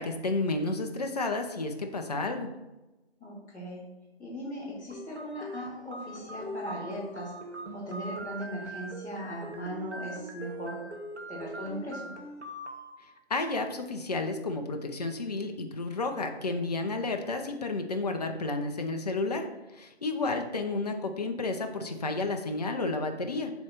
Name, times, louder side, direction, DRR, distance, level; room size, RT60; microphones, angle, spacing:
voice 1, 0.0-2.5 13.3-19.5 19.7-23.5, left 3 dB, 35° left, 5 dB, 0.8 m, -31 dB
voice 2, 3.2-3.8 4.2-10.8 11.3-12.1, equal, 10° left, -9 dB, 2.1 m, -38 dB
sound 1, 4.9-12.9, right 1 dB, 90° right, 1.6 m, -42 dB
7.0 x 3.4 x 5.9 m, 1.0 s
figure-of-eight pair, 150°, 33 cm